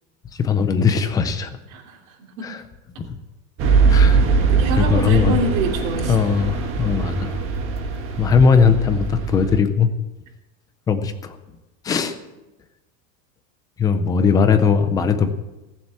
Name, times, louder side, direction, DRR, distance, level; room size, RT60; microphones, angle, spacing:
voice 1, 0.4-1.5 2.4-2.6 3.0-3.1 3.9-4.2 4.8-5.4 6.1-7.4 8.2-9.9 10.9-11.4 11.8-12.2 13.8-15.3, left 6 dB, 10° left, 9 dB, 0.4 m, -19 dB
voice 2, 1.7-2.5 3.7-3.8 4.5-6.2, right 2 dB, 80° right, 0 dB, 3.1 m, -26 dB
sound 1, 3.6-9.6, right 5 dB, 30° right, 1.5 m, -21 dB
18.5 x 7.3 x 7.4 m, 1.0 s
supercardioid pair, 180°, 39 cm